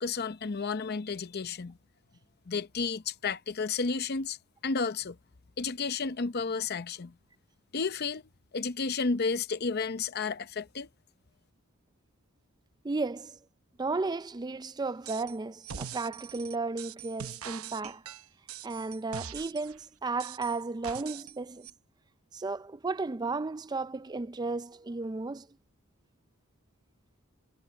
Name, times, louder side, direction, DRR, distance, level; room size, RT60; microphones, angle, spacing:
voice 1, 0.0-1.8 2.5-4.4 4.6-5.2 5.6-7.1 7.7-8.2 8.5-10.9, left 4 dB, 50° left, 0.7 m, -32 dB
voice 2, 12.8-13.4 13.8-18.0 18.6-21.7 22.3-25.5, right 3 dB, 20° right, 0.4 m, -34 dB
sound 1, 15.1-15.4 15.6-19.8 20.2-21.4 21.6-21.7, right 8 dB, 90° right, 0.9 m, -42 dB
head